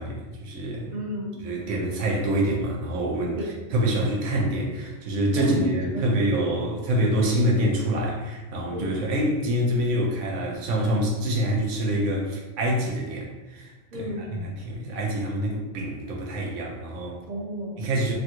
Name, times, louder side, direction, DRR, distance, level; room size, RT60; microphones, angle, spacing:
voice 1, 0.0-0.9 1.4-3.4 3.7-17.2 17.8-18.1, right 1 dB, 85° right, -2 dB, 1.0 m, -26 dB
voice 2, 0.9-1.5 3.4-3.7 5.3-6.2 8.7-9.0 13.9-14.5 15.4-15.6 17.2-18.1, equal, 45° right, -2 dB, 0.7 m, -34 dB
3.4 x 2.3 x 2.8 m, 1.2 s
omnidirectional pair, 1.2 m